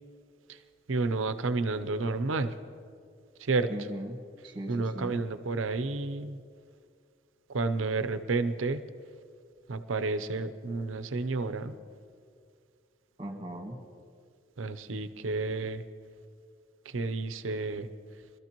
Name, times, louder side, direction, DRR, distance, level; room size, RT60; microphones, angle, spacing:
voice 1, 0.9-2.5 3.4-3.7 4.7-6.4 7.5-8.8 9.7-11.8 14.6-15.8 16.9-17.9, right 3 dB, 85° right, 11 dB, 0.7 m, -30 dB
voice 2, 3.7-5.2 13.2-13.8, right 1 dB, 25° right, 2 dB, 1.8 m, -39 dB
24.5 x 13.5 x 3.0 m, 2.2 s
head